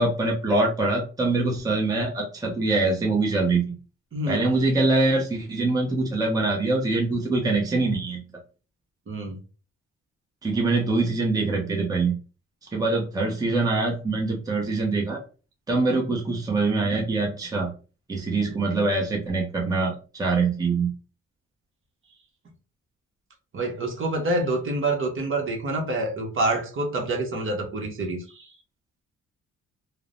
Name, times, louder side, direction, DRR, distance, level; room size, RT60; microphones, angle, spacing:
voice 1, 0.0-3.7 4.3-8.2 10.4-12.2 12.7-15.2 15.7-17.7 18.1-20.9, right 3 dB, 10° right, -1 dB, 0.7 m, -24 dB
voice 2, 4.1-4.5 9.1-9.4 23.5-28.5, right 2 dB, 45° right, 2 dB, 0.9 m, -27 dB
3.0 x 2.0 x 2.5 m, 0.35 s
cardioid pair, 90°, 30 cm